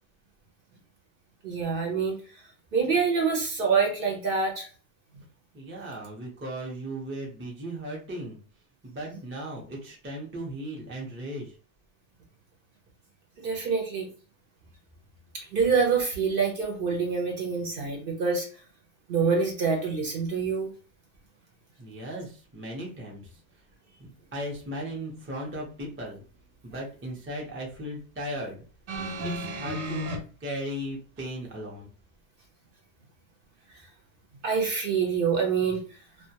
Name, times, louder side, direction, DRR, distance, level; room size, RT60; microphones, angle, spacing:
voice 1, 1.4-2.2 2.7-4.7 9.1-9.2 13.4-14.1 15.3-18.5 19.1-20.7 34.4-35.8, right 5 dB, 60° right, 0 dB, 0.7 m, -26 dB
voice 2, 5.5-8.4 8.8-11.5 21.8-23.3 24.3-26.2 26.6-28.6 29.2-30.1 30.4-31.9, right 1 dB, 15° right, -1 dB, 0.4 m, -36 dB
sound 1, 28.9-30.2 31.2-31.3, equal, 90° right, 1.0 m, -33 dB
2.2 x 2.2 x 2.7 m, 0.38 s
omnidirectional pair, 1.2 m